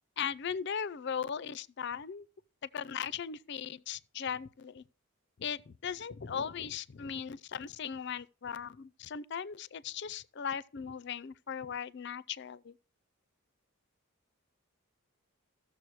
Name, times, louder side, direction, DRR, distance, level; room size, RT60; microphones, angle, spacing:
voice 1, 0.2-2.3 2.7-4.8 5.4-12.8, left 7 dB, 55° left, 0.5 m, -38 dB
15.0 x 6.7 x 4.6 m
head